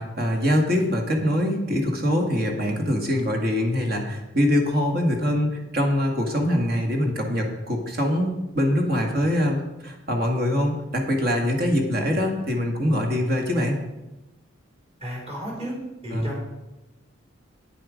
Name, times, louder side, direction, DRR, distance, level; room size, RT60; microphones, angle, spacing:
voice 1, 0.0-13.8 16.1-16.3, left 1 dB, 50° right, 2 dB, 1.9 m, -23 dB
voice 2, 15.0-15.7 16.0-16.4, equal, 30° right, -3 dB, 4.6 m, -33 dB
9.1 x 9.0 x 5.1 m, 1.0 s
head